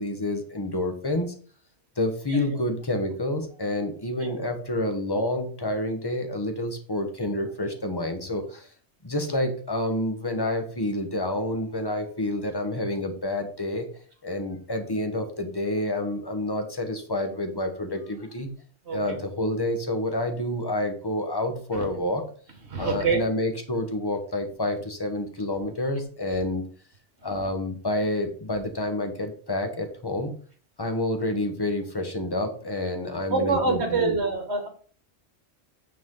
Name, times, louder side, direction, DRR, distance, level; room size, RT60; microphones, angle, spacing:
voice 1, 0.0-1.3 2.0-8.7 9.0-13.9 14.2-18.5 18.9-22.2 22.8-26.6 27.2-30.3 30.8-34.1, left 1 dB, 20° left, 6 dB, 1.2 m, -28 dB
voice 2, 18.9-19.2 21.7-21.9 22.7-23.2 27.3-27.5 33.3-34.7, right 4 dB, 60° right, 5 dB, 1.8 m, -26 dB
9.1 x 4.8 x 3.8 m, 0.44 s
omnidirectional pair, 1.3 m